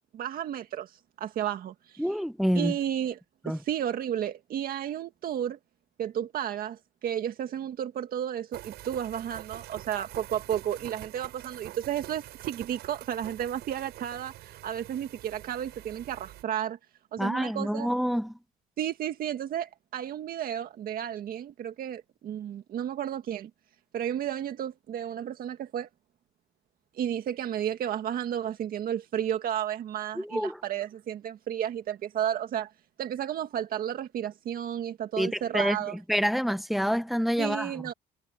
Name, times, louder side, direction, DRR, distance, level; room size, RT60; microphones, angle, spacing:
voice 1, 0.1-2.1 2.6-3.2 3.5-5.6 6.0-16.8 17.1-17.9 18.8-23.5 23.9-25.9 26.9-32.7 33.0-36.0 37.4-37.9, right 10 dB, 60° right, 1.8 m, -32 dB
voice 2, 2.0-2.7 3.5-3.6 17.2-18.3 30.2-30.6 35.2-37.7, equal, ahead, 1.3 m, -27 dB
sound 1, 8.5-16.4, right 15 dB, 80° right, 7.1 m, -46 dB
cardioid pair, 110°, 17 cm